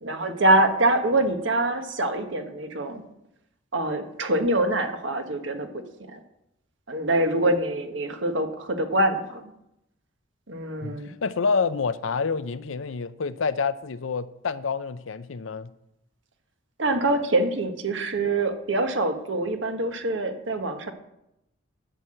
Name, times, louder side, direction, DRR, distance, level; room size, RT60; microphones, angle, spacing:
voice 1, 0.0-3.0 3.7-5.8 6.1-6.2 6.9-9.5 10.5-11.1 16.8-20.9, right 2 dB, 70° right, 6 dB, 1.4 m, -25 dB
voice 2, 10.8-15.7, left 5 dB, 90° left, 14 dB, 0.6 m, -28 dB
11.5 x 6.1 x 7.7 m, 0.84 s
head